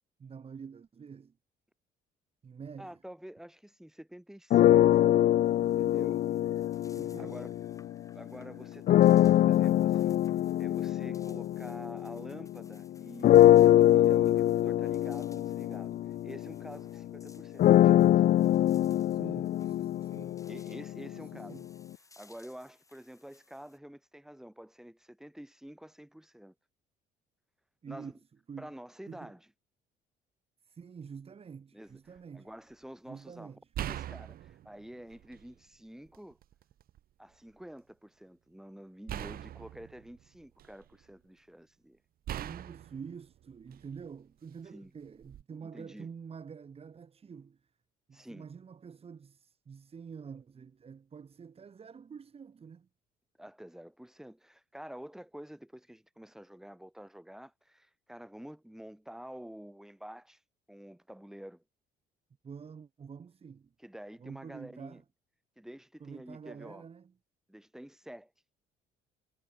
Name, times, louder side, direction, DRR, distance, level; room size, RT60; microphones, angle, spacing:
voice 1, 0.2-1.4 2.4-3.0 7.0-7.4 19.1-20.4 21.1-21.7 27.8-28.1 28.5-28.7 29.1-29.3 30.6-32.5 33.1-33.7 42.3-47.6 48.1-52.9 62.4-63.7 64.2-65.0 66.0-67.1, right 6 dB, 35° right, 5.3 m, -47 dB
voice 2, 2.8-4.8 5.6-6.3 7.2-7.5 8.1-10.2 10.6-18.1 20.5-21.6 22.2-26.5 27.9-28.1 28.6-29.4 31.7-32.0 32.3-33.6 33.9-36.4 37.2-42.0 44.7-44.9 45.6-46.1 48.1-48.5 53.4-60.4 60.7-61.6 63.8-65.0 65.6-66.9 67.5-68.3, equal, 5° right, 5.2 m, -48 dB
sound 1, 4.5-8.1 8.9-12.7 13.2-21.2, left 13 dB, 55° left, 0.6 m, -24 dB
sound 2, 4.9-23.8, left 3 dB, 20° left, 6.6 m, -62 dB
sound 3, 31.9-32.2 33.7-35.6 36.1-37.0 39.1-41.0 42.3-44.1 45.2-45.4, right 12 dB, 60° right, 2.8 m, -42 dB
cardioid pair, 110°, 17 cm